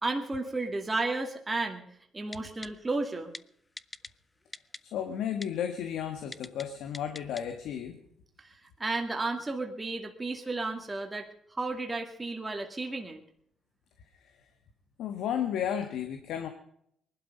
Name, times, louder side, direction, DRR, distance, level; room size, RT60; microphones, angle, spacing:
voice 1, 0.0-1.8 2.1-3.3 8.4-13.2, right 3 dB, 20° right, 3 dB, 2.3 m, -33 dB
Typing, 2.3-2.7 3.3-3.4 3.8-4.1 4.5-4.8 5.4-5.5 6.3-6.6 6.9-7.4 7.8-7.9, left 2 dB, 20° left, 0.6 m, -41 dB
voice 2, 4.8-8.0 15.0-16.5, left 9 dB, 85° left, 6 dB, 1.5 m, -33 dB
20.5 x 12.0 x 5.3 m, 0.71 s
cardioid pair, 90°, 0 cm